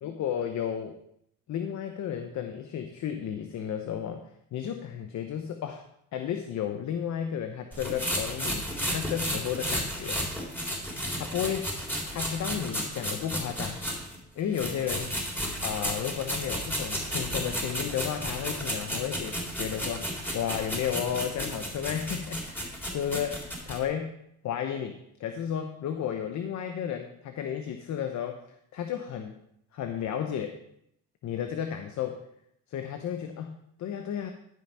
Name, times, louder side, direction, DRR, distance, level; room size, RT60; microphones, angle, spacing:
voice 1, 0.0-1.0 1.5-4.2 4.5-5.8 6.1-10.3 11.2-11.7 12.1-13.8 14.4-15.1 15.6-24.1 24.4-28.4 28.7-29.3 29.7-30.6 31.2-32.2 32.7-34.3, left 9 dB, 70° left, 6 dB, 0.9 m, -33 dB
sound 1, 7.7-14.2 14.5-23.8, equal, 5° left, 3.7 m, -33 dB
12.5 x 5.5 x 5.7 m, 0.75 s
cardioid pair, 90°, 30 cm